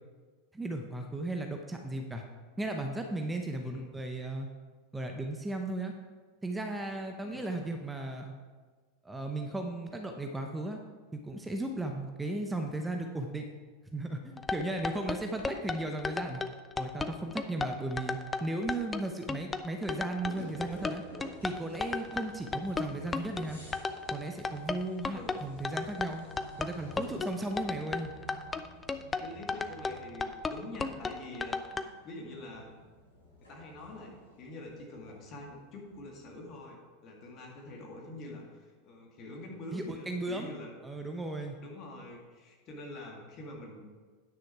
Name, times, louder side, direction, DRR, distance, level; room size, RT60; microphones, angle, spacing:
voice 1, 0.5-2.2 2.6-4.5 4.9-5.9 6.4-8.3 9.0-10.8 11.1-13.5 13.9-16.4 16.8-21.0 21.4-23.6 24.1-26.2 26.6-28.1 39.7-40.5 40.8-41.6, right 2 dB, 10° right, 4 dB, 0.8 m, -36 dB
voice 2, 7.2-7.6 22.5-22.6 25.1-25.4 29.2-32.7 33.5-40.7 41.6-43.9, left 1 dB, 40° left, 0 dB, 2.2 m, -45 dB
sound 1, 14.4-31.8, left 4 dB, 20° left, 0.5 m, -34 dB
sound 2, 20.2-36.6, right 1 dB, 85° left, 3.1 m, -52 dB
9.7 x 6.3 x 4.7 m, 1.4 s
figure-of-eight pair, 85°, 0 cm